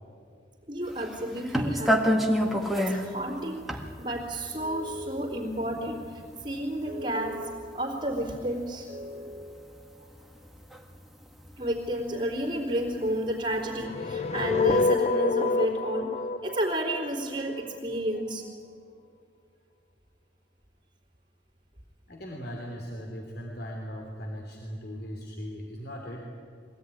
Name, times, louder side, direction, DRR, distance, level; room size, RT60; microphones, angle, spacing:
voice 1, 0.7-2.2 2.8-9.8 11.6-16.1 16.4-18.5, right 1 dB, 30° right, -7 dB, 3.5 m, -31 dB
sound 1, 0.9-9.0 9.3-13.0 13.4-13.8, equal, ahead, 1.8 m, -29 dB
sound 2, 13.7-17.8, left 3 dB, 35° left, 0.6 m, -27 dB
voice 2, 22.1-26.3, equal, 55° left, -1 dB, 3.1 m, -39 dB
23.0 x 17.0 x 9.9 m, 2.2 s
head